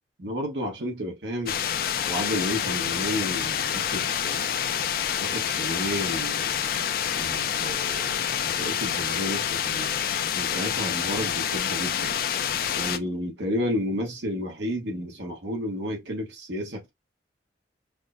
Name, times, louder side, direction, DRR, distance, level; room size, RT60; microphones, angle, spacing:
voice 1, 0.2-1.6 2.1-4.7 5.2-6.5 7.2-10.0 10.3-12.2 12.7-16.9, equal, 80° right, 1.1 m, -32 dB
sound 1, 1.5-13.0, left 9 dB, 50° left, 0.3 m, -27 dB
4.8 x 2.0 x 2.5 m
head